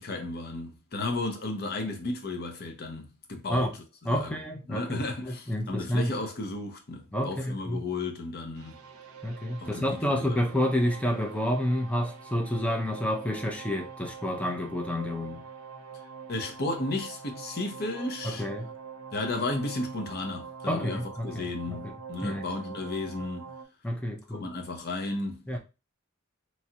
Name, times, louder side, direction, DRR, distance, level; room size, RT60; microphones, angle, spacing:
voice 1, 0.0-3.7 4.1-8.8 9.6-10.4 16.3-18.5 19.1-23.5 24.3-25.6, left 2 dB, 50° left, 0.7 m, -34 dB
voice 2, 4.0-6.1 7.1-7.8 9.2-15.4 18.2-18.7 20.7-21.9 22.2-22.4 23.8-24.5 25.5-25.6, left 1 dB, 5° left, 0.5 m, -29 dB
sound 1, 8.6-23.6, right 6 dB, 80° right, 0.5 m, -44 dB
3.0 x 2.3 x 2.8 m
head